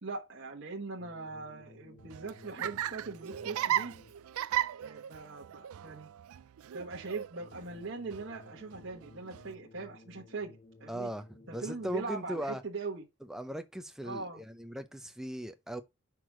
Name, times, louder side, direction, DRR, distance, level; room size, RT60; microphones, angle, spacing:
voice 1, 0.0-3.9 4.8-6.1 6.7-11.1 11.5-13.0 14.0-14.4, right 3 dB, 55° right, 1.2 m, -41 dB
sound 1, 1.0-4.4 7.4-12.4, left 2 dB, 40° left, 0.8 m, -56 dB
Laughter, 2.0-9.5, right 12 dB, 80° right, 0.3 m, -37 dB
voice 2, 10.9-12.6 13.3-15.8, equal, ahead, 0.6 m, -38 dB
5.9 x 4.8 x 4.9 m
head